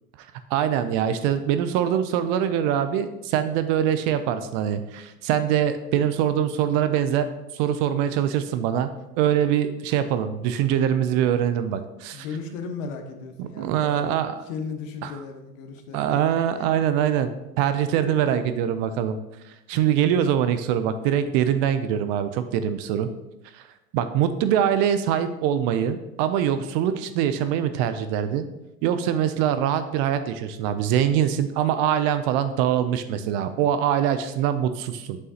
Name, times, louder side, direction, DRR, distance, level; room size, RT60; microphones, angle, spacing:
voice 1, 0.5-7.3 7.5-8.9 9.2-12.2 13.4-14.3 15.0-15.1 15.9-19.2 19.7-23.1 23.5-23.6 23.9-28.5 28.8-35.2, right 9 dB, 40° right, 11 dB, 0.4 m, -23 dB
voice 2, 12.1-16.2 16.5-16.6 18.0-18.4 19.8-20.1, left 5 dB, 60° left, 6 dB, 1.1 m, -36 dB
8.1 x 5.5 x 2.8 m, 0.98 s
hypercardioid pair, 100°, 45 cm